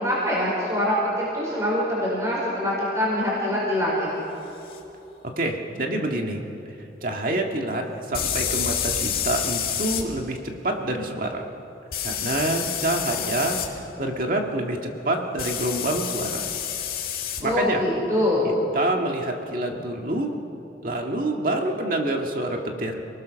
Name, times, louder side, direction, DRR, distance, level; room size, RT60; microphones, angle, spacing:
voice 1, 0.0-4.1 17.4-18.5, left 1 dB, 15° right, -6 dB, 5.1 m, -24 dB
sound 1, 4.7-4.8 8.1-10.0 11.9-13.7 15.4-17.4, left 9 dB, 50° left, 2.3 m, -28 dB
voice 2, 5.4-6.4 7.0-10.4 10.6-11.4 12.0-13.6 14.0-16.5 17.4-17.8 18.7-20.3 20.8-23.0, right 1 dB, 45° right, 2 dB, 2.0 m, -27 dB
29.0 x 20.0 x 6.5 m, 2.9 s
head